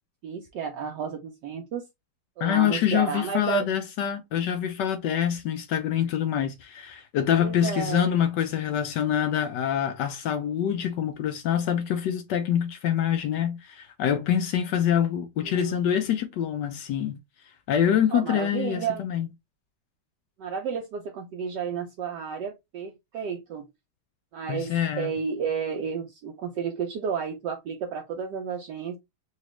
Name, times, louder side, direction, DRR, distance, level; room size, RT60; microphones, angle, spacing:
voice 1, 0.2-1.9 2.4-3.6 7.4-8.1 15.4-15.8 18.1-19.0 20.4-23.7 24.3-29.0, right 6 dB, 70° right, 1.1 m, -32 dB
voice 2, 2.4-17.2 17.7-19.3 24.5-25.1, left 9 dB, 75° left, 1.0 m, -25 dB
4.0 x 2.4 x 3.0 m
omnidirectional pair, 2.2 m